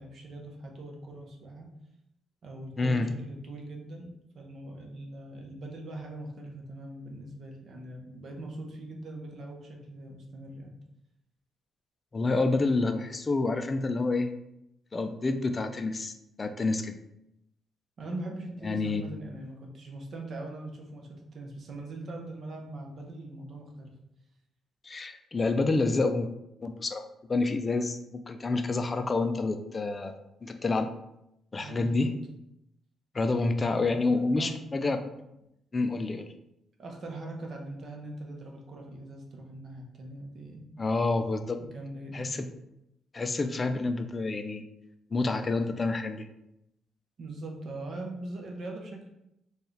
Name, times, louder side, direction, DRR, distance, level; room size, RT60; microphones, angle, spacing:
voice 1, 0.0-1.7 2.4-10.7 18.0-23.9 31.6-32.1 33.6-34.5 36.8-40.6 41.6-42.3 47.2-49.1, right 2 dB, 55° right, 1 dB, 0.8 m, -41 dB
voice 2, 2.8-3.1 12.1-14.3 14.9-17.0 18.6-19.0 24.8-26.3 26.6-30.1 30.4-30.9 31.5-32.1 33.1-35.0 35.7-36.3 40.8-41.6 42.1-42.4 43.1-44.6 45.1-46.3, left 3 dB, 30° left, 8 dB, 0.4 m, -28 dB
4.4 x 2.3 x 3.2 m, 0.83 s
cardioid pair, 90°, 0 cm